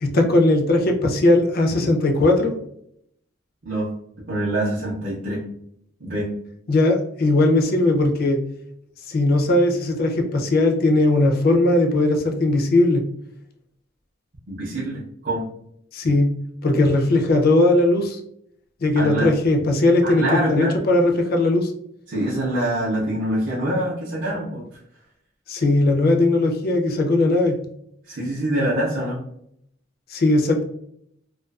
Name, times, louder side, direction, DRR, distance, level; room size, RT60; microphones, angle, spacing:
voice 1, 0.0-2.5 6.7-8.4 9.1-13.0 15.9-16.3 16.6-18.2 18.8-21.7 25.5-27.6 30.1-30.6, left 2 dB, 50° left, 3 dB, 0.4 m, -18 dB
voice 2, 3.6-3.9 4.3-5.4 6.0-6.3 14.5-15.5 18.9-19.3 20.0-20.7 22.1-24.6 28.1-29.2, right 1 dB, 50° right, -7 dB, 0.5 m, -25 dB
2.4 x 2.2 x 2.3 m, 0.72 s
head